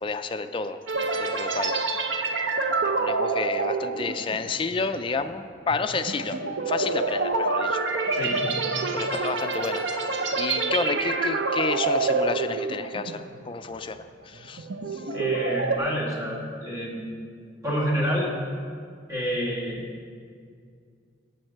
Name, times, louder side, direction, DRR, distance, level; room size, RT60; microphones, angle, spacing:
voice 1, 0.0-0.8 1.2-1.8 2.8-6.4 6.7-7.8 8.1-8.2 8.9-9.8 10.1-14.7 14.9-15.0, left 4 dB, 25° left, 8 dB, 0.4 m, -30 dB
sound 1, 0.9-13.4 13.7-14.0 14.4-15.8, right 3 dB, 75° right, 0.6 m, -27 dB
voice 2, 8.1-8.7 15.1-17.1 17.6-18.3 19.1-19.9, equal, 20° right, -4 dB, 1.8 m, -28 dB
7.5 x 7.2 x 6.5 m, 2.2 s
head